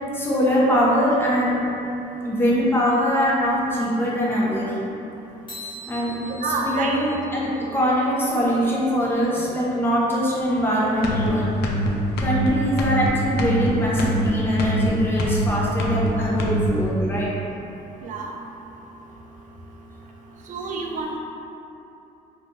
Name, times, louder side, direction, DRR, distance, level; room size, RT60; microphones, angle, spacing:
voice 1, 0.1-1.6 2.2-4.7 5.9-6.1 6.4-11.5 12.2-17.3, equal, 15° left, -6 dB, 0.6 m, -22 dB
sound 1, 5.5-8.1, equal, 30° left, 1.0 m, -41 dB
voice 2, 6.2-7.0 18.0-18.3 20.5-21.2, right 3 dB, 50° right, 1 dB, 0.4 m, -28 dB
sound 2, 11.0-11.3 11.6-11.9 12.2-12.5 12.8-13.1 13.4-13.7 14.0-14.3 14.6-14.9 15.2-15.5 15.8-16.1 16.4-16.7, right 1 dB, 70° left, 0.4 m, -23 dB
2.7 x 2.2 x 3.0 m, 2.8 s
cardioid pair, 110°, 17 cm